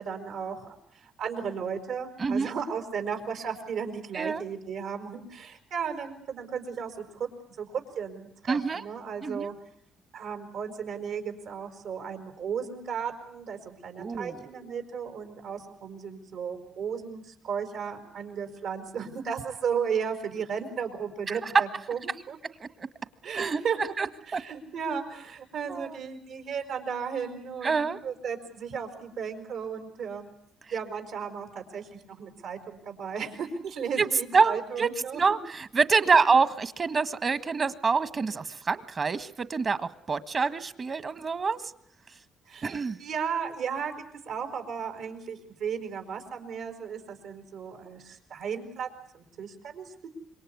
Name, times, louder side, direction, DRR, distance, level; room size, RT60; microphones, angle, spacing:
voice 1, 0.0-7.3 7.6-9.5 10.1-22.4 23.2-23.8 24.2-30.3 30.7-35.2 36.1-36.3 42.5-43.9 44.3-48.9 49.1-50.1, right 6 dB, 80° right, 6 dB, 5.5 m, -35 dB
voice 2, 2.2-2.5 4.1-4.4 8.5-8.8 9.2-9.5 14.0-14.5 21.3-21.4 23.3-23.6 24.0-24.1 24.3-24.4 25.7-25.9 27.6-28.0 34.0-34.1 34.3-41.6 42.6-43.0, right 5 dB, 40° right, 13 dB, 1.6 m, -26 dB
26.5 x 23.0 x 9.7 m, 0.67 s
cardioid pair, 90°, 0 cm